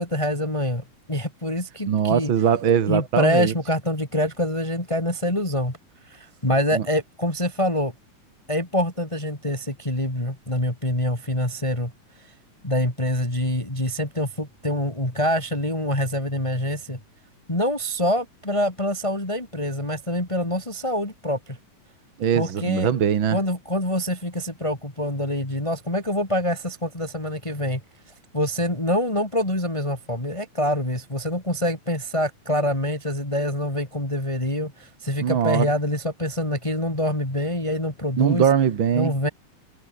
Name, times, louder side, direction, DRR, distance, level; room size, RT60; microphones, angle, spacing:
voice 1, 0.0-2.3 2.9-5.8 6.0-7.9 8.5-11.9 12.6-17.0 17.5-21.6 22.3-22.9 23.3-27.8 28.3-38.5 38.9-39.3, left 1 dB, 10° left, 4.1 m, -25 dB
voice 2, 1.9-3.5 6.7-6.8 22.2-23.4 35.2-35.7 38.2-39.1, right 8 dB, 45° right, 1.8 m, -21 dB
omnidirectional pair, 3.7 m